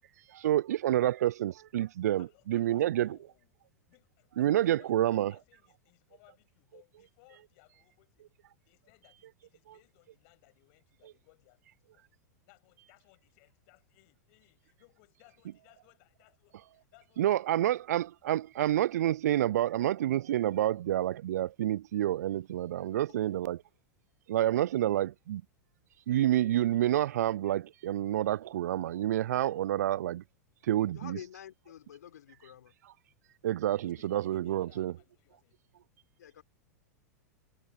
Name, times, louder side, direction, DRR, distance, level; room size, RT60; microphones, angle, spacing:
voice 1, 0.3-3.1 4.4-5.3 17.2-23.6 24.3-25.4 26.1-30.2 30.6-31.2 33.4-34.9, right 12 dB, 70° right, 0.4 m, -28 dB
voice 2, 2.2-3.6 3.9-8.3 8.6-12.0 12.5-17.9 23.1-23.5 33.9-35.6, left 30 dB, 55° left, 7.7 m, -64 dB
voice 3, 30.9-32.7 36.2-36.4, left 10 dB, 75° left, 4.4 m, -48 dB
hypercardioid pair, 100°, 9 cm